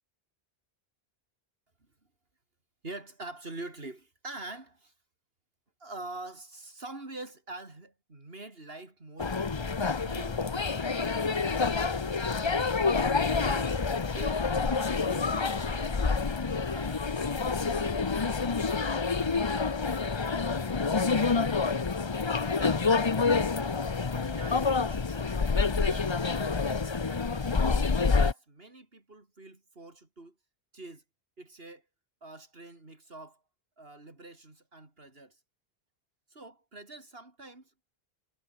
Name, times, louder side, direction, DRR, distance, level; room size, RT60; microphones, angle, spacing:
voice 1, 2.8-4.9 5.8-9.3 10.0-12.8 13.3-16.2 16.6-17.1 17.4-21.7 22.2-23.7 24.1-25.4 25.6-27.6 28.1-30.4 30.7-31.0 31.4-31.9 32.2-33.4 33.8-35.4 36.3-37.7, right 2 dB, 70° right, 4.1 m, -47 dB
sound 1, 9.2-28.3, left 4 dB, 30° left, 0.8 m, -28 dB
omnidirectional pair, 1.0 m